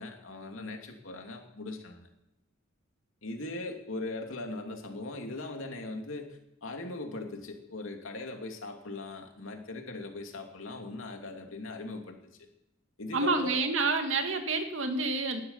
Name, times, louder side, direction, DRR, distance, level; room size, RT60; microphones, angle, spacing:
voice 1, 0.0-2.1 3.2-12.4 13.0-13.7, left 2 dB, 85° left, 3 dB, 2.8 m, -40 dB
voice 2, 13.1-15.4, right 3 dB, 75° right, 5 dB, 2.1 m, -28 dB
19.0 x 12.0 x 5.8 m, 0.87 s
head